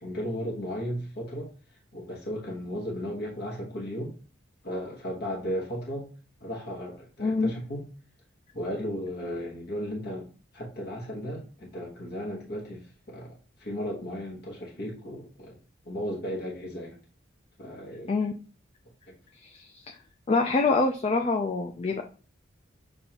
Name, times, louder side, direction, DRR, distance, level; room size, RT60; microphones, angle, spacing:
voice 1, 0.0-1.5 1.9-4.1 4.6-6.1 6.4-7.9 8.5-10.3 10.5-15.6 15.8-17.0 17.6-18.1 19.1-19.2, equal, 55° left, -3 dB, 1.2 m, -35 dB
voice 2, 7.2-7.5 18.1-18.3 19.4-19.7 20.3-22.0, left 3 dB, 30° left, 3 dB, 0.3 m, -25 dB
7.0 x 2.6 x 2.9 m, 0.37 s
head